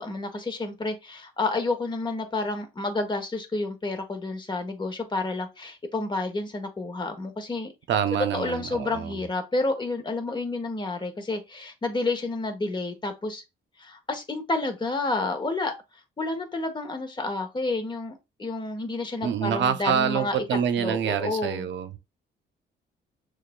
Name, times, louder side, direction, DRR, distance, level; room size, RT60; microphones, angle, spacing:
voice 1, 0.0-7.7 8.2-13.4 13.8-15.7 16.2-20.4 20.8-21.7, left 2 dB, 25° left, 1.1 m, -30 dB
voice 2, 7.9-9.1 19.2-22.0, right 8 dB, 65° right, 0.7 m, -26 dB
6.4 x 2.4 x 2.2 m
cardioid pair, 90°, 20 cm